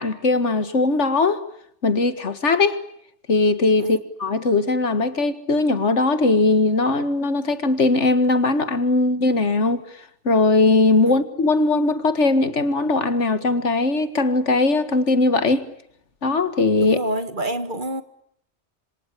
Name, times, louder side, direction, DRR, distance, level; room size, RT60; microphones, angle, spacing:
voice 1, 0.0-1.4 1.8-2.8 3.3-9.8 10.3-15.7 16.2-17.0, left 3 dB, 85° left, 2.1 m, -19 dB
voice 2, 16.8-18.0, right 1 dB, 45° right, 1.9 m, -27 dB
27.5 x 25.5 x 8.3 m
omnidirectional pair, 1.2 m